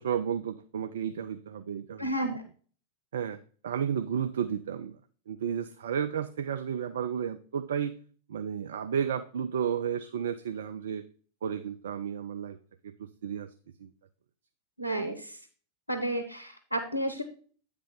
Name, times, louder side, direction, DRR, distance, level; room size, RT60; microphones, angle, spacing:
voice 1, 0.0-2.4 3.1-3.4 3.6-5.0 5.3-8.0 8.3-11.0 11.4-12.6 12.8-13.5 13.8-13.9, right 8 dB, 60° right, 10 dB, 0.4 m, -32 dB
voice 2, 2.0-2.4 14.8-15.4 15.9-17.2, right 1 dB, 90° left, 5 dB, 0.6 m, -31 dB
8.8 x 3.4 x 5.2 m, 0.43 s
figure-of-eight pair, 90°, 0 cm